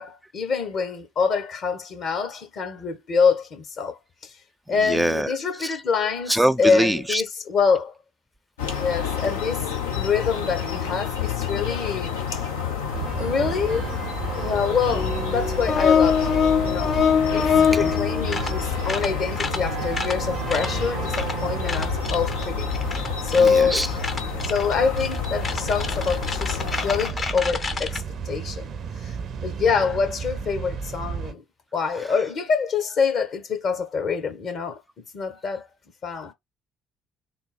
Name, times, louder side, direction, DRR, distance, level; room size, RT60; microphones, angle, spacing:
voice 1, 0.0-4.0 4.7-7.9 8.8-9.7 9.9-12.2 13.2-14.0 14.4-22.7 23.2-24.0 24.4-28.7 29.0-29.2 29.4-31.4 31.7-34.8 35.1-35.6 36.0-36.3, left 5 dB, 50° left, 1.2 m, -25 dB
voice 2, 4.8-5.3 5.6-5.7 6.3-7.2 17.5-17.9 23.4-23.9, right 1 dB, 10° right, 0.3 m, -23 dB
sound 1, 8.6-27.1, left 8 dB, 75° left, 0.7 m, -30 dB
sound 2, 12.9-31.3, right 6 dB, 50° right, 0.6 m, -33 dB
sound 3, 14.9-18.5 18.9-19.1 19.4-19.6 19.9-20.1 20.5-20.7 21.1-21.3 21.7-28.0, left 7 dB, 35° left, 0.8 m, -24 dB
3.8 x 2.0 x 4.2 m
figure-of-eight pair, 50°, 0 cm